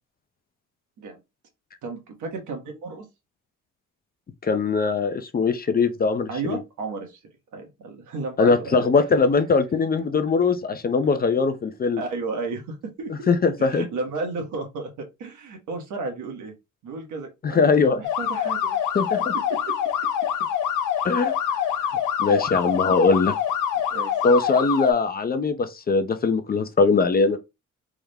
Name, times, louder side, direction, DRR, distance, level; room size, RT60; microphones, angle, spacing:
voice 1, 1.8-3.1 6.3-7.2 7.5-8.9 11.0-11.1 12.0-13.1 13.6-16.5 16.8-18.8 19.7-19.8 22.2-22.4 23.9-24.1, right 3 dB, 75° right, 1.2 m, -33 dB
voice 2, 4.4-6.6 8.4-12.0 13.3-13.9 17.4-18.0 18.9-19.3 21.0-21.3 22.2-23.3 24.2-27.4, left 4 dB, 30° left, 0.5 m, -21 dB
sound 1, 18.0-24.9, left 9 dB, 85° left, 0.6 m, -25 dB
3.6 x 2.1 x 3.3 m
cardioid pair, 90°, 30 cm